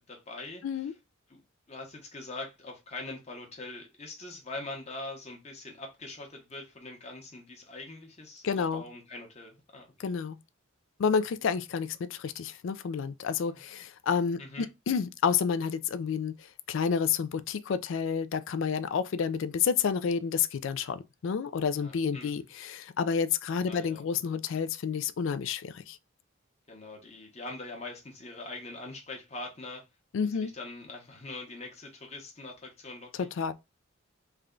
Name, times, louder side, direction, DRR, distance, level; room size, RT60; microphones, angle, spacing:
voice 1, 0.1-0.9 1.3-1.4 1.7-10.2 13.5-13.6 14.4-14.7 21.8-22.5 23.7-24.0 26.7-29.8 30.2-33.3, left 2 dB, 30° left, 0.9 m, -43 dB
voice 2, 8.4-8.9 10.0-10.4 11.0-16.3 16.7-26.0 30.1-30.5 33.2-33.5, left 6 dB, 65° left, 0.3 m, -30 dB
3.4 x 2.2 x 3.7 m
head